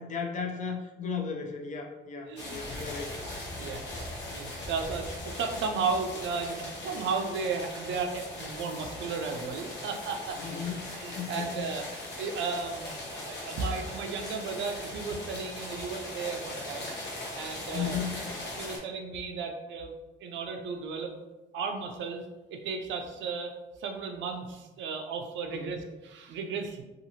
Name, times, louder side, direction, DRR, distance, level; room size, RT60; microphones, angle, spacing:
voice 1, 0.0-3.1 3.5-4.0 10.4-11.6 17.7-18.3 25.5-25.8, left 6 dB, 40° left, 1 dB, 0.4 m, -36 dB
sound 1, 2.3-18.8, left 2 dB, 65° left, 0.8 m, -40 dB
voice 2, 2.3-2.9 3.6-3.8 4.3-10.4 11.0-11.8 12.2-17.0 17.3-18.0 18.6-19.9 20.2-21.1 21.5-22.2 22.5-23.5 23.8-26.8, right 5 dB, 75° right, 4 dB, 0.4 m, -34 dB
2.7 x 2.4 x 2.8 m, 1.1 s
cardioid pair, 145°, 19 cm